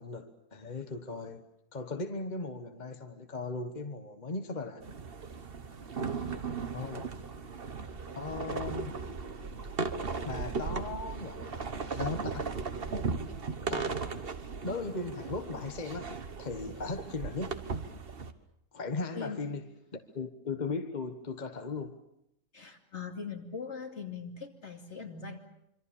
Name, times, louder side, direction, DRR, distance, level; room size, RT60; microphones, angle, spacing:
voice 1, 0.0-1.4 1.7-4.8 6.7-7.1 8.1-9.0 10.2-12.6 13.7-14.1 14.6-17.6 18.7-19.6 19.9-22.0, left 3 dB, 40° left, 1.3 m, -38 dB
sound 1, 4.8-18.3, right 5 dB, 50° right, 1.5 m, -37 dB
voice 2, 19.1-19.5 22.5-25.4, left 5 dB, 65° left, 2.9 m, -41 dB
26.0 x 25.0 x 7.1 m
omnidirectional pair, 1.3 m